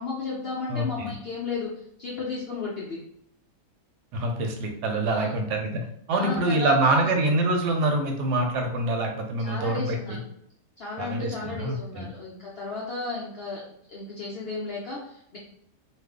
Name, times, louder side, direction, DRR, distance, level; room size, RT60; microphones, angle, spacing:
voice 1, 0.0-1.7 2.0-3.0 5.1-5.4 6.1-7.1 9.4-10.2 10.8-13.6 13.9-15.4, left 4 dB, 60° left, -5 dB, 0.6 m, -34 dB
voice 2, 0.7-1.1 4.1-5.8 6.1-10.2 11.0-12.1, right 2 dB, 85° right, 3 dB, 1.2 m, -25 dB
2.6 x 2.5 x 3.5 m, 0.74 s
omnidirectional pair, 1.7 m